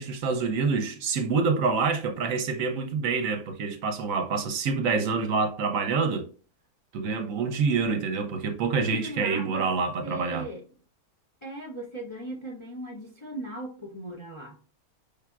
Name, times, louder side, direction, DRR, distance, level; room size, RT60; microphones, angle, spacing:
voice 1, 0.0-6.3 6.9-10.4, right 4 dB, 70° right, 1.0 m, -27 dB
voice 2, 8.9-9.6 10.0-10.6 11.4-14.6, right 1 dB, 25° left, 0.7 m, -38 dB
5.8 x 3.4 x 2.3 m
omnidirectional pair, 1.6 m